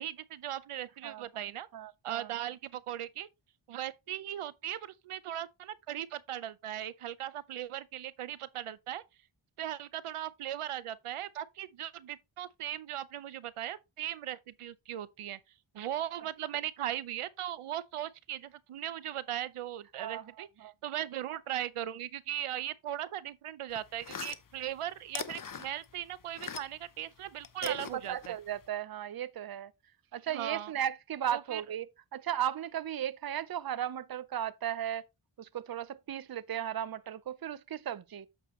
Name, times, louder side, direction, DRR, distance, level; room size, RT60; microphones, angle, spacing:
voice 1, 0.0-1.7 2.0-3.3 3.7-9.0 9.6-15.4 15.7-28.3 30.3-30.7 31.3-31.6, right 11 dB, 90° right, 0.6 m, -38 dB
voice 2, 1.7-2.3 19.9-20.7 27.6-29.7 30.1-35.1 35.4-38.3, right 10 dB, 45° right, 0.6 m, -36 dB
sound 1, 23.7-26.9 27.2-28.7, left 6 dB, 40° left, 0.8 m, -43 dB
8.8 x 6.7 x 3.1 m
wide cardioid pair, 85°, 50 cm